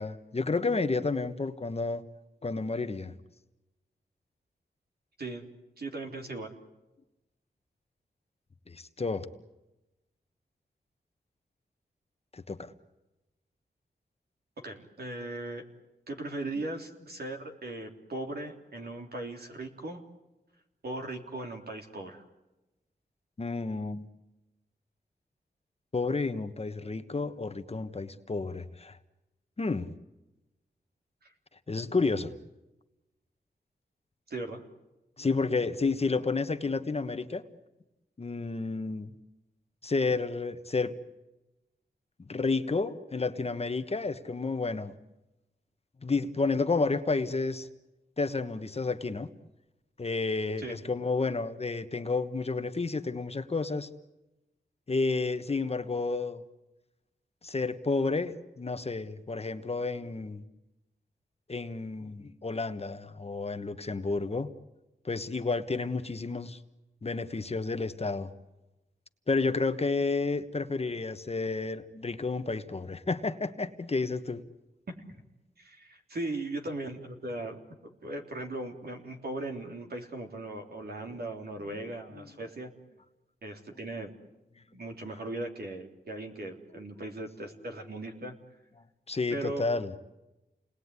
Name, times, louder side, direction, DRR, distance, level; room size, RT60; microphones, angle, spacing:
voice 1, 0.0-2.0 2.4-3.1 8.7-9.3 12.3-12.7 23.4-24.1 25.9-28.9 29.6-29.9 31.7-32.3 35.2-37.4 38.2-39.1 39.8-40.9 42.3-44.9 46.0-47.7 48.2-49.3 50.0-53.9 54.9-56.4 57.4-60.4 61.5-64.5 65.0-66.6 67.0-68.3 69.3-74.4 89.1-89.9, left 3 dB, 35° left, 10 dB, 1.3 m, -31 dB
voice 2, 5.8-6.5 14.6-15.6 16.1-20.0 20.8-22.2 31.2-31.3 34.3-34.6 50.6-50.8 74.9-75.2 75.6-82.7 83.4-84.1 84.7-88.3 89.3-89.8, right 2 dB, 65° right, 4 dB, 3.4 m, -38 dB
29.0 x 20.0 x 9.7 m, 1.0 s
wide cardioid pair, 90°, 17 cm